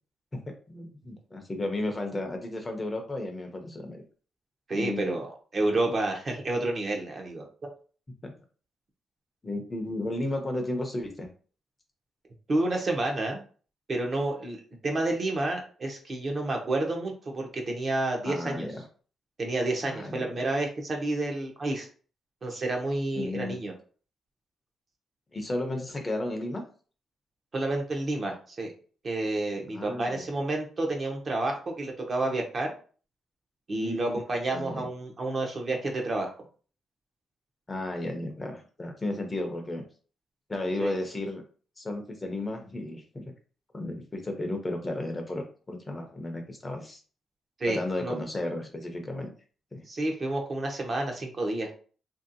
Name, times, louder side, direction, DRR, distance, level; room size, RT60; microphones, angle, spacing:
voice 1, 0.7-4.0 4.7-5.1 8.2-8.3 9.4-11.3 18.2-18.8 19.9-20.3 23.1-23.6 25.3-26.6 29.7-30.3 33.7-34.2 34.5-34.9 37.7-39.8 40.5-41.4 41.8-43.2 43.7-47.0 47.6-49.3 49.7-49.8, left 1 dB, 20° left, 3 dB, 0.6 m, -33 dB
voice 2, 4.7-7.4 12.5-13.4 13.9-18.7 19.4-21.9 22.4-23.7 27.5-28.7 29.0-32.7 33.7-36.3 40.8-40.9 47.6-48.1 49.9-51.7, right 2 dB, 35° right, 2 dB, 0.6 m, -30 dB
2.9 x 2.7 x 2.6 m, 0.40 s
cardioid pair, 135°, 0 cm